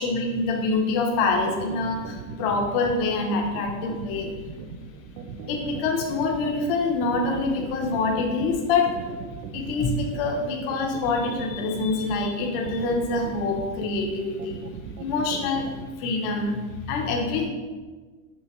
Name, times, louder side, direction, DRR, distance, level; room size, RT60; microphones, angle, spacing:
voice 1, 0.0-4.3 5.5-8.9 9.5-14.7 15.0-15.7 16.0-17.5, left 3 dB, 40° left, 1 dB, 0.9 m, -25 dB
sound 1, 1.1-15.9, right 6 dB, 90° right, 0.7 m, -38 dB
6.3 x 6.0 x 3.1 m, 1.4 s
supercardioid pair, 170°, 42 cm